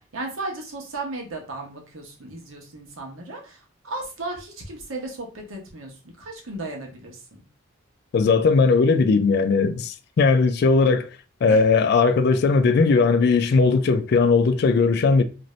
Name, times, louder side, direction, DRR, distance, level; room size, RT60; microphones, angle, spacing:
voice 1, 0.0-7.4 11.5-11.6, right 2 dB, 85° right, 0.9 m, -35 dB
voice 2, 8.1-11.1 11.4-15.2, left 4 dB, 55° left, 0.3 m, -18 dB
2.6 x 2.5 x 3.0 m
head